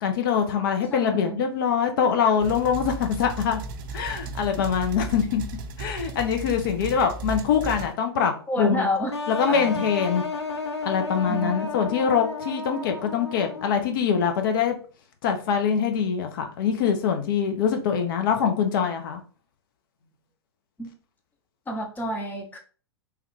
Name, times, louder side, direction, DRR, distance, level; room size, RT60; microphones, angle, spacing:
voice 1, 0.0-3.6 3.9-5.4 5.8-8.8 9.3-10.2 10.8-14.8 15.2-19.2, left 7 dB, 55° left, 0.7 m, -24 dB
voice 2, 0.9-1.4 8.5-9.1 9.5-9.8 11.3-11.7 20.8-20.9 21.7-22.6, equal, 15° left, 0.8 m, -29 dB
sound 1, 2.4-7.9, right 3 dB, 50° right, 0.4 m, -35 dB
sound 2, 9.1-14.0, left 4 dB, 90° left, 0.5 m, -32 dB
3.2 x 2.3 x 3.1 m
figure-of-eight pair, 100°, 14 cm